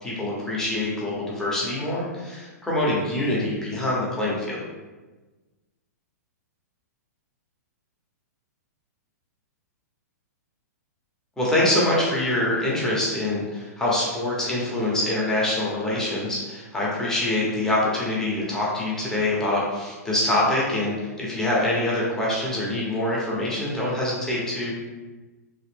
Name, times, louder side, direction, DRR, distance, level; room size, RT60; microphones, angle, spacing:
voice 1, 0.0-4.6 11.4-24.7, left 1 dB, 5° left, -6 dB, 0.8 m, -25 dB
2.9 x 2.4 x 3.4 m, 1.2 s
hypercardioid pair, 130°, 9 cm